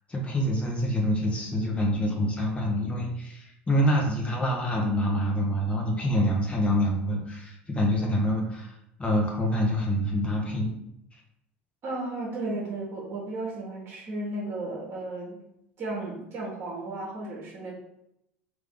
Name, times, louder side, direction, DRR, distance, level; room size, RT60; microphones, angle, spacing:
voice 1, 0.1-10.7 11.1-11.2, equal, 20° left, 0 dB, 1.3 m, -26 dB
voice 2, 11.8-15.4 15.8-17.7, right 2 dB, 40° right, -4 dB, 1.6 m, -34 dB
3.4 x 3.2 x 3.8 m, 0.81 s
hypercardioid pair, 75°, 6 cm